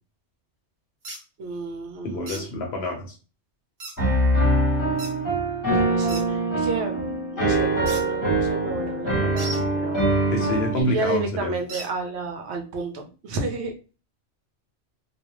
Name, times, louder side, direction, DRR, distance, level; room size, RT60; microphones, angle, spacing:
sound 1, 1.0-1.2 2.3-2.4 3.8-4.0 5.0-5.1 6.1-6.2 7.9-8.0 9.4-9.6 11.7-11.9, right 2 dB, 40° right, 0.8 m, -35 dB
voice 1, 1.4-2.5 5.7-7.0 7.3-10.0 10.7-13.7, right 3 dB, 70° right, 3 dB, 0.8 m, -31 dB
voice 2, 2.0-3.1 10.3-11.5, left 1 dB, 65° left, 1 dB, 0.9 m, -27 dB
Piano, 4.0-10.8, right 2 dB, 20° left, 0.9 m, -23 dB
2.4 x 2.1 x 2.9 m, 0.34 s
omnidirectional pair, 1.2 m